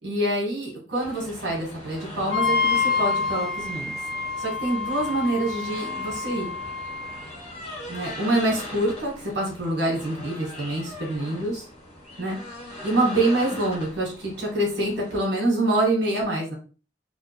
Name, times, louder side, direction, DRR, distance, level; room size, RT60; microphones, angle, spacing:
voice 1, 0.0-3.9 4.4-6.5 7.9-11.6 12.2-12.4 12.8-16.5, right 1 dB, 75° right, -2 dB, 1.8 m, -26 dB
sound 1, 1.0-15.2, left 1 dB, 35° left, 1.3 m, -40 dB
Wind instrument woodwind instrument, 2.3-7.3, left 4 dB, 85° left, 0.9 m, -27 dB
4.0 x 2.5 x 3.0 m, 0.37 s
head